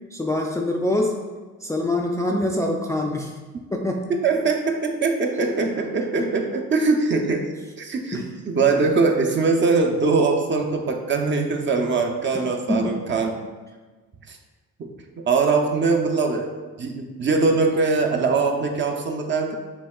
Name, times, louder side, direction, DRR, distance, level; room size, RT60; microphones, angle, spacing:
voice 1, 0.1-1.2 1.6-3.4 3.7-4.1 5.4-5.8 6.2-6.3 8.1-8.4 12.7-13.0, left 1 dB, 10° left, 0 dB, 0.3 m, -25 dB
voice 2, 4.2-7.5 7.8-8.2 8.5-13.3 14.3-14.4 14.8-14.9 15.3-16.5 16.8-19.5, right 4 dB, 40° right, 3 dB, 0.6 m, -22 dB
6.7 x 2.8 x 2.3 m, 1.3 s
cardioid pair, 90°, 30 cm